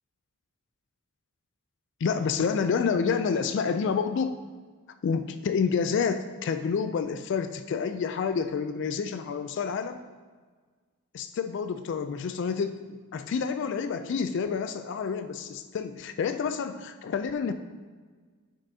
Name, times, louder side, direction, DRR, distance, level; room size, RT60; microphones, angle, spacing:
voice 1, 2.0-4.4 5.0-10.0 11.1-17.5, left 6 dB, 60° left, 9 dB, 0.3 m, -28 dB
8.9 x 6.4 x 2.7 m, 1.5 s
head